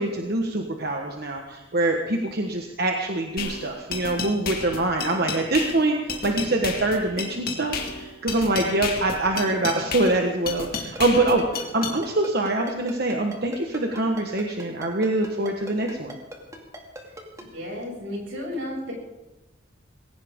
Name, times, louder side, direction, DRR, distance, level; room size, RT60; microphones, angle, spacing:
voice 1, 0.0-11.4 11.7-16.2, right 2 dB, 55° right, 2 dB, 1.4 m, -24 dB
sound 1, 3.4-12.0, left 4 dB, 50° left, 2.3 m, -32 dB
Ringtone, 10.7-17.4, equal, 15° right, 2.4 m, -39 dB
voice 2, 17.4-18.9, left 1 dB, 85° right, -1 dB, 7.0 m, -33 dB
20.0 x 17.0 x 3.7 m, 1.0 s
head